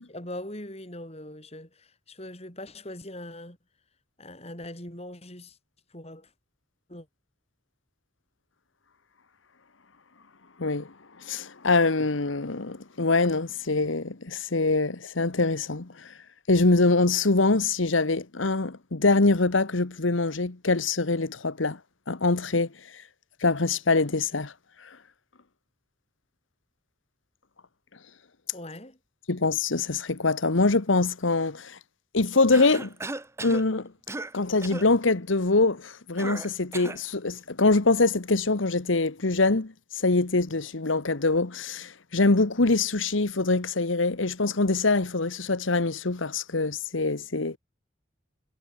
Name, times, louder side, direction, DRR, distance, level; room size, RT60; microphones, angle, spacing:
voice 1, 0.1-3.6 4.2-5.6 5.9-6.3 6.9-7.1 28.5-29.0, left 1 dB, 30° left, 7.6 m, -41 dB
voice 2, 10.6-10.9 11.2-16.1 16.5-21.8 22.1-22.7 23.4-24.5 29.3-31.8 32.1-32.9 33.4-33.9 34.3-47.6, left 3 dB, 85° left, 1.4 m, -24 dB
Cough, 32.5-33.7 34.1-34.4 34.6-34.9 36.2-37.1, right 2 dB, 15° right, 0.9 m, -36 dB
head